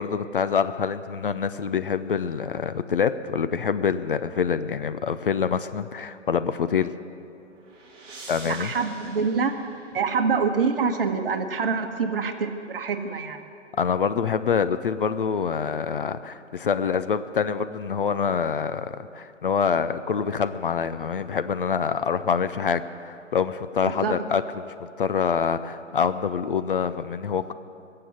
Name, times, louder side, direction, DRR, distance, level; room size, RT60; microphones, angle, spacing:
voice 1, 0.0-6.9 8.3-8.7 13.8-27.5, left 6 dB, 45° left, 12 dB, 0.5 m, -26 dB
sound 1, 7.2-10.4, right 3 dB, 15° right, 2.0 m, -46 dB
voice 2, 8.4-9.6 9.9-13.4 23.8-24.2, right 5 dB, 50° right, 6 dB, 1.3 m, -26 dB
19.5 x 7.8 x 9.3 m, 2.6 s
figure-of-eight pair, 140°, 37 cm